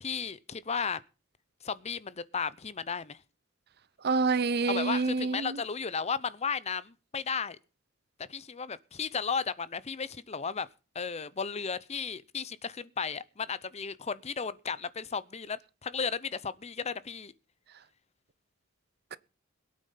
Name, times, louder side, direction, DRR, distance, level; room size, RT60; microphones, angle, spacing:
voice 1, 0.0-1.0 1.6-3.2 4.7-7.6 8.2-10.7 10.9-17.3, left 5 dB, 35° left, 0.7 m, -34 dB
voice 2, 4.0-5.6 19.1-19.2, right 4 dB, 55° right, 0.7 m, -27 dB
21.5 x 8.9 x 5.7 m
head